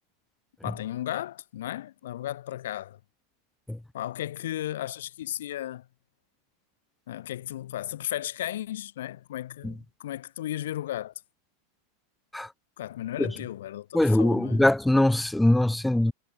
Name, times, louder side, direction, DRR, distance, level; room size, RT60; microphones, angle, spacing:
voice 1, 0.6-3.0 3.9-5.9 7.1-11.1 12.8-14.6, left 13 dB, 60° left, 1.5 m, -35 dB
voice 2, 13.9-16.1, left 1 dB, 5° left, 1.1 m, -22 dB
figure-of-eight pair, 90°, 0 cm